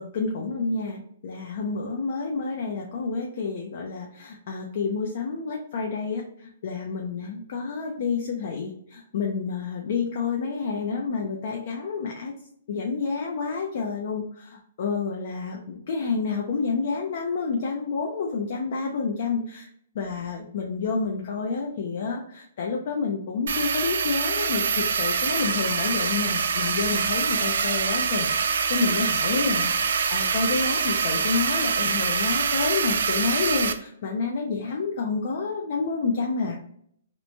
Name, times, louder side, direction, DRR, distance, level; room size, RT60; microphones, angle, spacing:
voice 1, 0.0-12.3 12.7-19.7 19.9-36.6, left 4 dB, 50° left, 1 dB, 0.4 m, -29 dB
sound 1, 23.5-33.7, right 6 dB, 75° right, 0.3 m, -25 dB
2.9 x 2.1 x 2.6 m, 0.66 s
hypercardioid pair, 165°, 0 cm